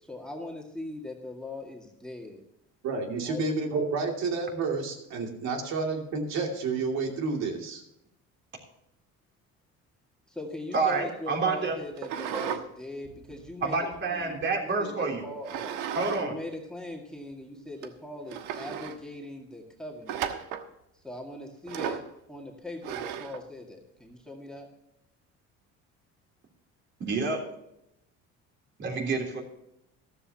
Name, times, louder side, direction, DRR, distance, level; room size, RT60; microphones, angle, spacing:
voice 1, 0.0-2.4 3.2-3.5 10.3-14.4 14.8-15.7 16.2-20.2 21.0-22.0 22.3-24.7, left 2 dB, 5° left, -1 dB, 2.0 m, -40 dB
voice 2, 2.8-7.8, right 4 dB, 65° right, 2 dB, 2.6 m, -30 dB
voice 3, 10.7-11.8 13.6-15.2 15.9-16.3 27.0-27.5 28.8-29.4, right 4 dB, 40° right, 1 dB, 3.4 m, -28 dB
sound 1, 12.0-12.6 13.0-14.4 15.4-16.2 16.5-16.6 17.3-17.4 17.8-17.9 18.3-19.0 20.1-20.7 21.7-22.1 22.8-23.4, right 9 dB, 85° right, 1.3 m, -35 dB
14.0 x 13.5 x 2.9 m, 0.81 s
cardioid pair, 150°, 30 cm